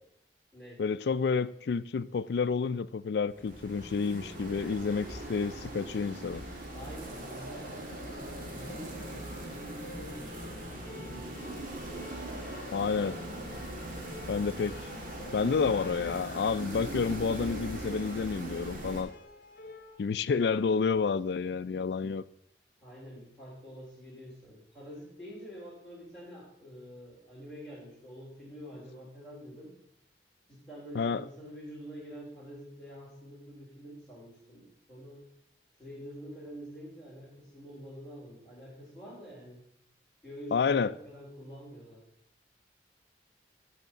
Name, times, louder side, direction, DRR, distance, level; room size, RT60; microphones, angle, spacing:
voice 1, 0.8-6.4 12.7-13.2 14.3-14.8 15.3-19.1 20.0-22.2 30.9-31.2 40.5-40.9, left 5 dB, 75° left, 0.4 m, -29 dB
sound 1, 3.3-19.0, right 1 dB, 50° right, 1.6 m, -40 dB
voice 2, 6.7-9.2 9.5-11.8 22.8-29.7 30.5-35.2 35.8-39.6 40.2-42.0, equal, ahead, 3.4 m, -47 dB
sound 2, 7.6-20.0, left 1 dB, 55° left, 1.2 m, -51 dB
6.6 x 6.3 x 6.5 m
head